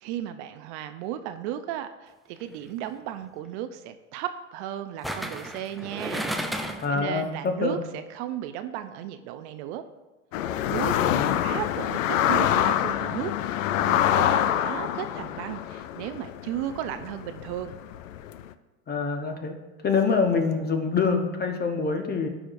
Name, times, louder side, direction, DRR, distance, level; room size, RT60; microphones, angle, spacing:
voice 1, 0.0-9.8 10.7-11.0 11.4-13.3 13.7-17.7, right 11 dB, 60° right, 10 dB, 0.6 m, -35 dB
sound 1, 2.4-2.7 5.0-7.0 7.3-7.4, equal, ahead, 0.3 m, -33 dB
voice 2, 6.8-7.8 11.0-11.2 18.9-19.6 19.8-22.3, left 5 dB, 25° left, 5 dB, 1.1 m, -25 dB
sound 2, 10.3-18.4, left 11 dB, 80° left, 0.5 m, -26 dB
13.5 x 5.0 x 2.6 m, 1.2 s
hypercardioid pair, 95°, 38 cm